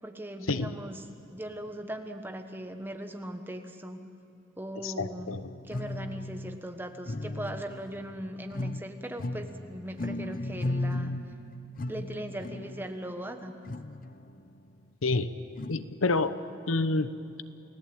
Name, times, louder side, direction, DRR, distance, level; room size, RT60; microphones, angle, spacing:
voice 1, 0.0-4.0 4.6-5.4 5.6-11.1 11.9-13.5, right 1 dB, 10° right, 6 dB, 1.3 m, -39 dB
voice 2, 4.8-5.4 15.0-15.3 15.7-16.4 16.7-17.1, left 3 dB, 80° left, 12 dB, 0.9 m, -28 dB
sound 1, 5.2-6.6 7.1-8.9 9.2-12.9 13.7-14.4 15.6-15.8, left 2 dB, 45° left, 0.7 m, -36 dB
29.0 x 17.0 x 8.8 m, 2.7 s
head